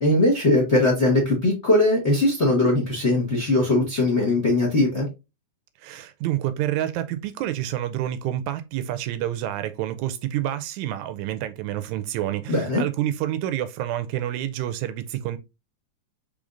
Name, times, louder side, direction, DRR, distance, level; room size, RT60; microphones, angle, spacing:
voice 1, 0.0-5.1 12.5-12.8, left 2 dB, 50° left, 0.8 m, -20 dB
voice 2, 5.8-15.4, right 12 dB, 80° right, 1.8 m, -28 dB
4.9 x 3.6 x 2.5 m
omnidirectional pair, 3.5 m